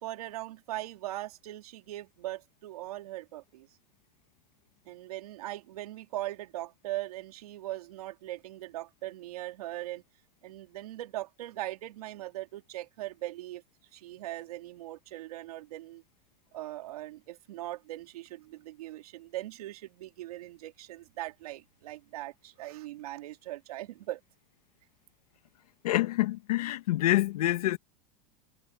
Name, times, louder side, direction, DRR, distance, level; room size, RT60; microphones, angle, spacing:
voice 1, 0.0-3.7 4.8-10.0 10.4-13.6 13.9-16.0 16.5-24.2, right 15 dB, 80° right, 2.9 m, -40 dB
voice 2, 25.8-27.8, left 15 dB, 90° left, 1.6 m, -26 dB
supercardioid pair, 175°, 19 cm